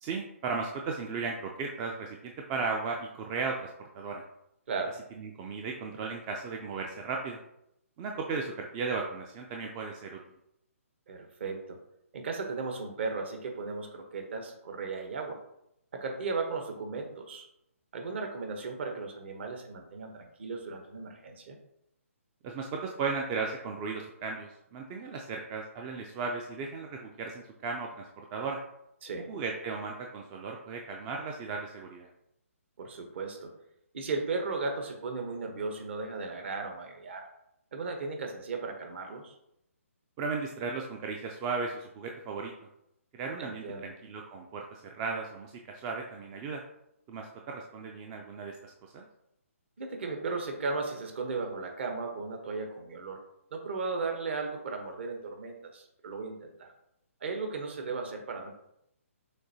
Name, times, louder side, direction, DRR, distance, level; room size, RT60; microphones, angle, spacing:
voice 1, 0.0-4.2 5.2-7.4 8.0-10.2 22.4-28.6 29.3-32.1 40.2-42.5 43.1-46.6 47.1-49.1, right 4 dB, 20° right, 1 dB, 0.3 m, -36 dB
voice 2, 4.7-5.0 11.1-11.8 12.1-15.4 15.9-17.5 17.9-21.6 29.0-29.3 32.8-33.5 33.9-37.3 37.7-39.4 43.4-43.9 49.8-53.2 53.5-56.7 57.2-58.5, right 4 dB, 50° right, 4 dB, 1.0 m, -36 dB
6.4 x 2.6 x 2.7 m, 0.79 s
figure-of-eight pair, 140°, 8 cm